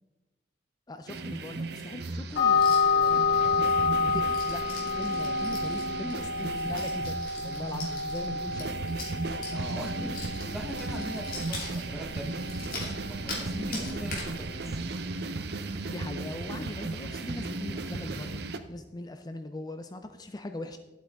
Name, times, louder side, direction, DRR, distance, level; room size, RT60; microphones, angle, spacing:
voice 1, 0.9-2.6 2.9-4.7 5.0-9.2 15.9-20.8, left 2 dB, 20° left, 8 dB, 0.4 m, -40 dB
sound 1, 1.1-18.6, right 3 dB, 60° right, 0.6 m, -36 dB
sound 2, 2.3-14.7, left 4 dB, 85° left, 2.6 m, -29 dB
sound 3, 2.5-3.1 3.4-13.4 13.7-14.3 14.7-14.8 15.1-15.5 15.7-15.8 16.3-16.5, left 3 dB, 50° left, 2.8 m, -42 dB
voice 2, 9.5-14.8, equal, ahead, 3 dB, 0.9 m, -41 dB
11.5 x 8.5 x 3.5 m, 1.1 s
head